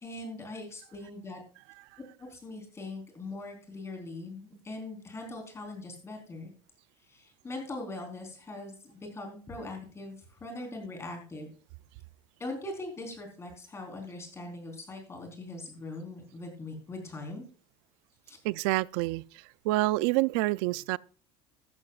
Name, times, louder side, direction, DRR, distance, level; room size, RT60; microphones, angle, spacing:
voice 1, 0.0-1.4 2.2-6.5 7.1-11.5 12.4-17.4 18.3-18.4, left 2 dB, 20° left, 3.9 m, -41 dB
voice 2, 18.4-19.2 19.6-21.0, right 19 dB, 85° right, 0.4 m, -27 dB
14.0 x 13.0 x 2.4 m
cardioid pair, 150°, 14 cm